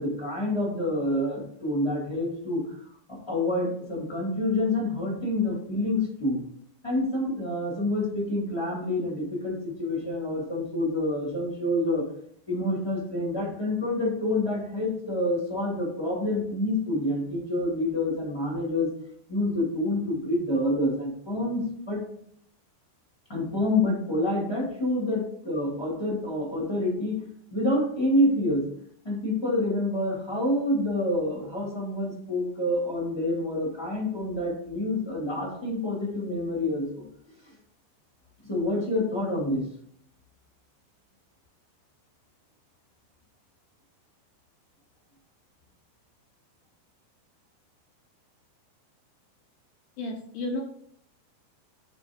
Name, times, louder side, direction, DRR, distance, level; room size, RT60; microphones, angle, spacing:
voice 1, 0.0-2.6 3.1-6.4 6.8-12.0 12.5-18.9 19.3-22.0 23.3-27.2 27.5-28.7 29.0-37.0 37.5-37.6 38.5-39.6, left 1 dB, 30° left, -3 dB, 0.4 m, -27 dB
voice 2, 50.0-50.6, left 2 dB, 80° left, 1 dB, 1.9 m, -32 dB
10.0 x 3.4 x 3.5 m, 0.67 s
omnidirectional pair, 4.4 m